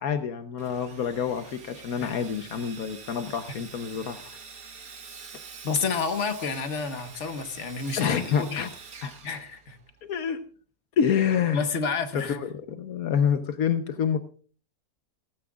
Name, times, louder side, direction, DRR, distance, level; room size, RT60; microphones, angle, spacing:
voice 1, 0.0-4.4 8.0-8.7 9.0-9.1 10.0-10.4 11.0-11.7 12.3-14.2, left 7 dB, 80° left, 8 dB, 1.4 m, -27 dB
Sawing, 0.6-10.0, right 5 dB, 75° right, 1.9 m, -46 dB
voice 2, 5.6-8.7 9.2-9.8 11.5-12.4, left 5 dB, 55° left, 7 dB, 1.6 m, -30 dB
16.5 x 15.5 x 2.4 m, 0.40 s
omnidirectional pair, 1.5 m